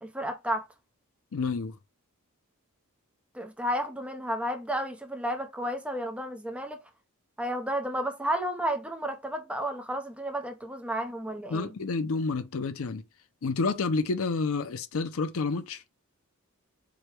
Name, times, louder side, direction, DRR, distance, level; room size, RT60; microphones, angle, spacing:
voice 1, 0.0-0.6 3.3-6.8 7.4-11.7, equal, 5° right, 0.7 m, -32 dB
voice 2, 1.3-1.8 11.5-13.0 13.4-15.8, left 4 dB, 65° left, 0.5 m, -29 dB
4.9 x 2.3 x 4.4 m
head